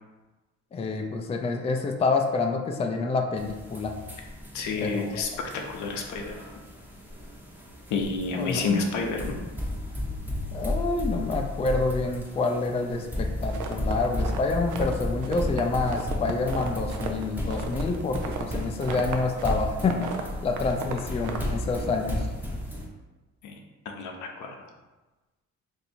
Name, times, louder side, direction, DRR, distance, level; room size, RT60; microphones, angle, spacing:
voice 1, 0.7-3.9 4.8-5.2 8.4-8.8 10.5-20.1 20.4-22.3, left 3 dB, 20° left, 3 dB, 0.3 m, -28 dB
sound 1, 3.4-22.9, left 1 dB, 5° right, 0.7 m, -34 dB
voice 2, 4.5-6.3 7.9-9.3 23.4-23.5 24.0-24.6, left 4 dB, 75° left, 2 dB, 0.6 m, -29 dB
sound 2, 13.5-14.9 15.2-19.5 19.8-21.8, right 5 dB, 85° right, 0.5 m, -36 dB
2.7 x 2.6 x 4.2 m, 1.2 s
cardioid pair, 90°, 30 cm